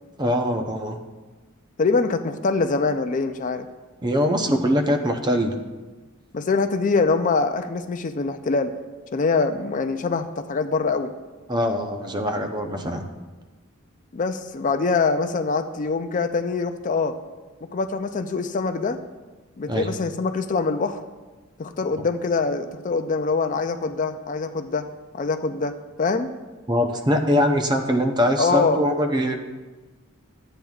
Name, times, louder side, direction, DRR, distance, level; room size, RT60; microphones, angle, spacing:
voice 1, 0.2-1.0 4.0-5.6 11.5-13.0 19.7-19.9 26.7-29.4, equal, 20° right, 4 dB, 0.7 m, -22 dB
voice 2, 1.8-3.7 6.3-8.7 9.1-11.1 14.1-17.1 17.6-19.0 19.6-21.0 21.6-24.9 25.1-26.3 28.4-28.8, left 4 dB, 35° left, 8 dB, 0.4 m, -24 dB
13.5 x 8.9 x 2.4 m, 1.2 s
head